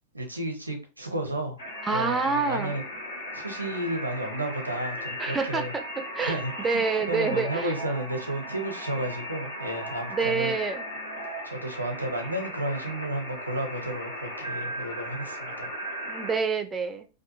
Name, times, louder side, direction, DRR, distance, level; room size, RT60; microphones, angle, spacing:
voice 1, 0.1-1.6 1.9-2.8 3.3-5.7 6.2-6.8 7.1-10.5 11.4-15.7, right 1 dB, 85° right, 0.6 m, -32 dB
sound 1, 1.6-16.4, equal, 75° left, 1.0 m, -37 dB
voice 2, 1.8-2.8 5.2-5.8 6.1-7.8 10.1-10.8 16.1-17.1, right 4 dB, 15° right, 0.4 m, -27 dB
2.6 x 2.4 x 2.7 m
figure-of-eight pair, 90°, 0 cm